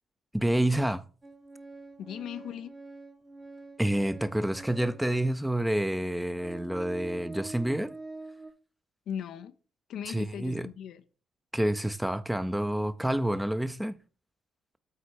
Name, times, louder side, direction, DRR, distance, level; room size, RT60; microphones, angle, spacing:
voice 1, 0.3-1.0 3.8-8.0 10.1-10.7 11.5-14.0, right 1 dB, 5° right, 0.6 m, -28 dB
Organ, 1.2-5.1 5.8-5.9 6.3-8.5, right 2 dB, 30° right, 1.2 m, -45 dB
voice 2, 2.0-2.7 9.1-9.5 9.9-11.0, left 9 dB, 65° left, 0.4 m, -38 dB
8.1 x 4.3 x 4.7 m
hypercardioid pair, 45°, 0 cm